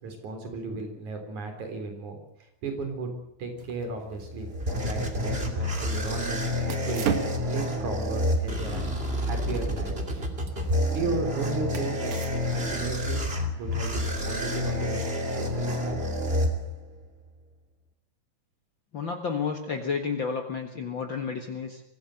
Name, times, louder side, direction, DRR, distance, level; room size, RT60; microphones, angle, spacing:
voice 1, 0.0-3.1 3.4-4.5 4.8-7.1 7.5-10.2 10.9-12.1 12.5-13.2 13.6-15.1 15.4-16.0, right 3 dB, 85° right, 6 dB, 5.2 m, -35 dB
sound 1, 3.6-12.8, right 6 dB, 55° right, 2.3 m, -38 dB
sound 2, 4.1-17.0, left 1 dB, 20° right, 2.8 m, -29 dB
voice 2, 18.9-21.8, left 5 dB, 45° left, 3 dB, 2.1 m, -31 dB
23.5 x 16.5 x 7.9 m, 0.79 s
omnidirectional pair, 3.3 m